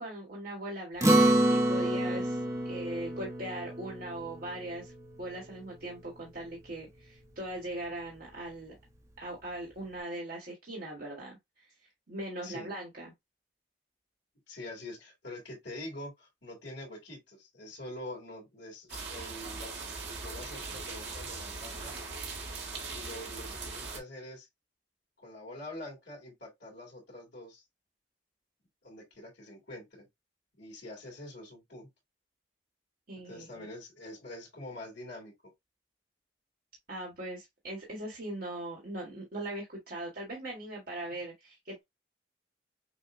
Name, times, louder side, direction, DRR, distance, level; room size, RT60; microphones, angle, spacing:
voice 1, 0.0-4.9 5.2-8.8 9.2-11.4 12.1-13.1 33.1-33.6 36.9-41.8, right 1 dB, 55° right, 1.3 m, -40 dB
Acoustic guitar, 1.0-5.7, right 1 dB, 15° right, 0.7 m, -28 dB
voice 2, 14.5-19.8 20.1-22.0 22.9-24.5 25.2-27.6 28.8-30.1 30.6-31.9 33.2-35.3 41.1-41.2, left 1 dB, 75° left, 2.2 m, -45 dB
sound 1, 18.9-24.0, right 4 dB, 75° right, 1.4 m, -40 dB
6.2 x 2.2 x 2.5 m
head